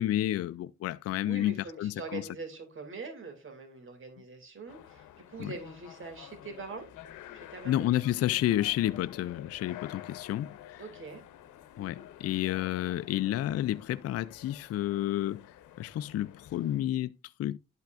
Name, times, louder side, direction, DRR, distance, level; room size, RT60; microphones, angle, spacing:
voice 1, 0.0-2.2 5.4-5.5 7.6-10.8 11.8-15.4 15.8-17.1 17.4-17.6, left 13 dB, 55° left, 0.4 m, -30 dB
voice 2, 1.2-6.9 7.3-7.9 10.8-11.2, right 4 dB, 40° right, 2.6 m, -43 dB
sound 1, 4.7-16.9, left 11 dB, 80° left, 0.9 m, -49 dB
11.5 x 5.7 x 2.5 m
cardioid pair, 90°, 30 cm